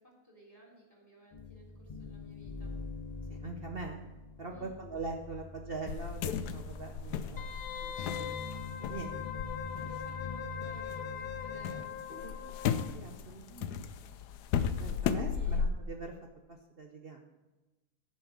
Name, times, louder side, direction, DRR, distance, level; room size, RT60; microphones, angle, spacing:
voice 1, 0.0-2.7 4.5-4.8 7.4-8.5 9.8-12.5 14.9-15.6, equal, 10° right, -3 dB, 3.2 m, -57 dB
sound 1, 1.3-11.8, left 3 dB, 40° left, 0.6 m, -44 dB
voice 2, 3.3-4.0 4.4-7.5 8.2-8.4 8.8-9.4 12.2-12.4 12.9-13.9 14.8-16.1 16.8-17.5, right 3 dB, 50° right, 3 dB, 0.8 m, -42 dB
sound 2, 5.9-11.0 11.3-15.7, left 7 dB, 90° left, 1.2 m, -35 dB
Wind instrument woodwind instrument, 7.4-12.9 13.2-13.3, left 9 dB, 70° left, 1.2 m, -41 dB
8.6 x 5.4 x 7.5 m, 1.1 s
omnidirectional pair, 1.7 m